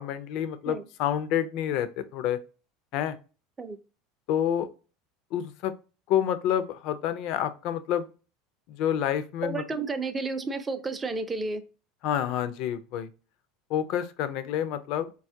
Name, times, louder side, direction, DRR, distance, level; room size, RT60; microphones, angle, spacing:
voice 1, 0.0-2.4 2.9-3.2 4.3-4.7 5.3-5.7 6.1-8.1 8.7-9.6 12.0-13.1 13.7-15.1, left 10 dB, 60° left, 0.5 m, -28 dB
voice 2, 9.4-11.6, right 3 dB, 20° right, 0.5 m, -31 dB
4.2 x 2.3 x 2.6 m
supercardioid pair, 110°, 0 cm